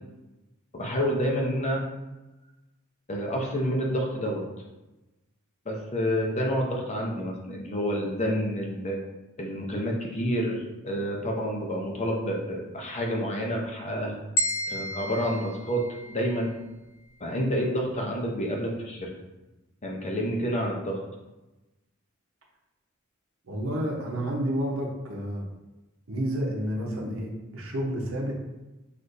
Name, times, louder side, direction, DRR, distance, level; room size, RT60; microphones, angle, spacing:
voice 1, 0.7-1.8 3.1-4.4 5.7-9.0 9.4-14.2 14.7-15.8 16.1-16.6 17.2-19.1 19.8-21.0, equal, 30° left, 0 dB, 0.7 m, -28 dB
sound 1, 14.4-16.5, equal, 85° left, 0.7 m, -32 dB
voice 2, 23.5-25.4 26.1-28.4, equal, 75° right, -1 dB, 0.9 m, -30 dB
6.3 x 2.5 x 2.6 m, 1.0 s
head